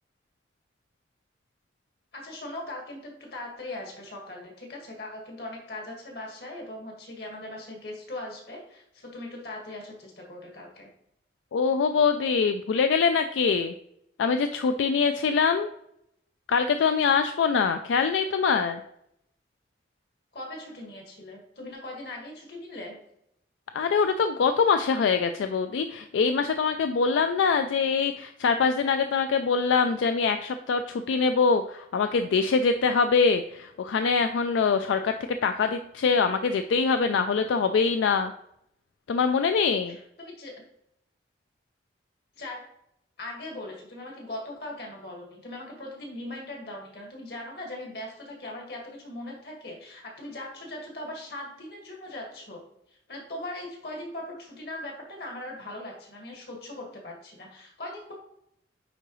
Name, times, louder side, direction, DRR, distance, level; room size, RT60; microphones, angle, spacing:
voice 1, 2.1-10.9 20.3-22.9 39.9-40.5 42.3-42.6 43.2-52.6 53.1-58.1, left 1 dB, 60° left, -1 dB, 1.7 m, -40 dB
voice 2, 11.5-13.7 14.2-15.7 16.5-18.8 23.7-38.3 39.1-40.0, left 5 dB, 90° left, 8 dB, 0.3 m, -24 dB
9.2 x 3.9 x 3.0 m, 0.76 s
head